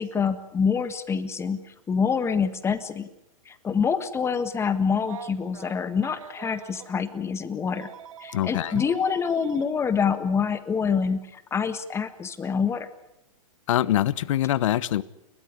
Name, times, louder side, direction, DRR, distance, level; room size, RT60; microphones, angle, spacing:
voice 1, 0.0-1.6 1.9-3.1 3.5-7.9 8.2-12.9, left 6 dB, 15° left, 1.5 m, -26 dB
Telephone, 5.0-6.9 7.7-9.6 11.0-11.1 12.7-12.9, right 9 dB, 80° right, 2.5 m, -44 dB
voice 2, 8.3-8.9 13.7-15.0, left 13 dB, 65° left, 1.1 m, -24 dB
30.0 x 14.0 x 9.8 m
hypercardioid pair, 135°, 17 cm